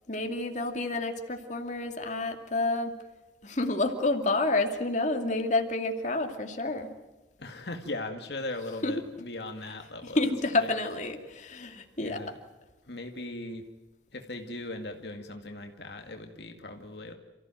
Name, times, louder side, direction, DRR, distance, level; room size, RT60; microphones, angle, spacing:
voice 1, 0.1-3.0 3.4-6.9 8.8-8.9 10.0-12.2, left 2 dB, 45° left, 4 dB, 2.5 m, -29 dB
voice 2, 7.4-10.2 10.5-10.7 12.0-12.4 12.9-13.7 14.1-17.2, left 2 dB, 65° left, 4 dB, 2.1 m, -38 dB
29.0 x 15.0 x 9.2 m, 1.1 s
head